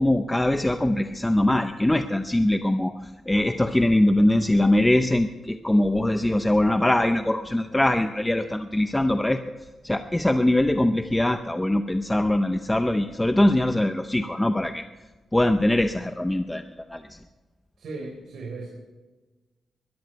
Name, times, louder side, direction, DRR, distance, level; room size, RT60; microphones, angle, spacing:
voice 1, 0.0-9.4 9.8-14.9 15.3-16.6 16.9-17.2, left 1 dB, 10° left, 8 dB, 0.6 m, -22 dB
voice 2, 17.8-18.7, right 3 dB, 65° right, -3 dB, 4.2 m, -36 dB
21.0 x 13.0 x 4.6 m, 1.2 s
wide cardioid pair, 140°, 0 cm